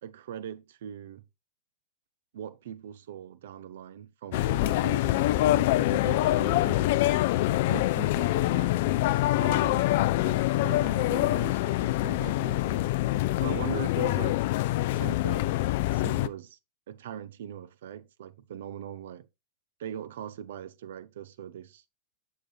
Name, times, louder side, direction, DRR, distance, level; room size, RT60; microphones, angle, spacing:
voice 1, 0.0-1.2 2.3-7.1 7.4-12.9 13.4-14.4 14.9-16.6 16.9-19.3 19.8-21.8, right 10 dB, 60° right, 0.6 m, -41 dB
sound 1, 4.3-16.3, left 16 dB, 50° left, 0.4 m, -25 dB
8.0 x 7.6 x 2.4 m
figure-of-eight pair, 90°, 0 cm